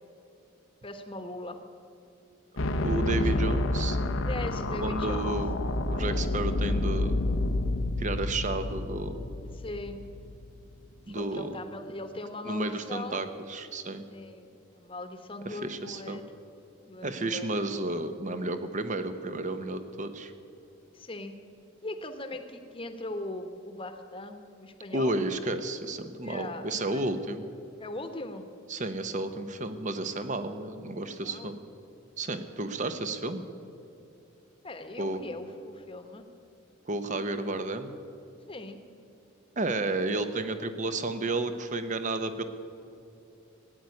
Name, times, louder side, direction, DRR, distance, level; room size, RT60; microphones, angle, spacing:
voice 1, 0.8-1.6 4.3-5.3 9.5-10.0 11.1-13.2 14.1-16.2 16.9-17.5 20.9-21.3 21.8-25.2 26.2-27.0 27.8-28.4 31.1-31.6 34.6-36.3 38.5-38.8, left 2 dB, 25° left, 7 dB, 1.1 m, -40 dB
sound 1, 2.6-10.6, left 2 dB, 80° left, 0.9 m, -29 dB
voice 2, 2.8-4.0 4.8-5.5 5.9-7.2 8.0-9.3 11.1-11.5 12.5-14.0 15.5-16.2 17.0-20.3 24.9-27.4 28.7-31.6 32.2-33.4 35.0-35.2 36.9-37.9 39.6-42.4, right 2 dB, 40° right, 9 dB, 0.9 m, -32 dB
16.0 x 9.3 x 9.6 m, 2.7 s
head